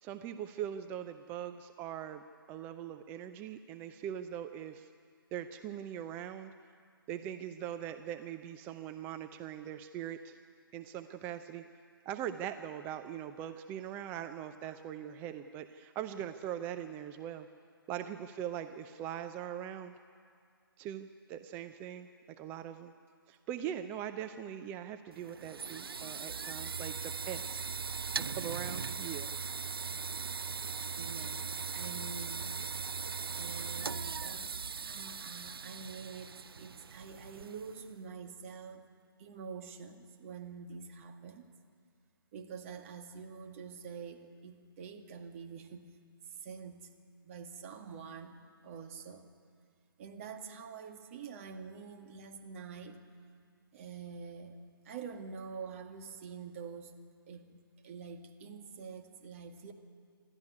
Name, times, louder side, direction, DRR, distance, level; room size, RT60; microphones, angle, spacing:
voice 1, 0.0-2.2 2.5-4.9 5.3-6.5 7.1-10.4 10.7-11.7 12.1-17.5 17.9-19.9 20.8-22.1 22.4-22.9 23.3-27.7 28.3-29.3, right 10 dB, 15° right, 9 dB, 0.5 m, -41 dB
sound 1, 25.1-37.9, right 5 dB, 75° right, 0.5 m, -39 dB
voice 2, 31.0-32.5 33.3-38.9 39.2-41.5 42.3-45.9 46.3-46.9 47.2-48.4 48.6-49.3 50.0-53.0 53.7-54.6 54.8-57.0 57.3-59.7, right 6 dB, 35° right, 4 dB, 2.0 m, -46 dB
27.5 x 12.5 x 9.6 m, 2.3 s
figure-of-eight pair, 140°, 12 cm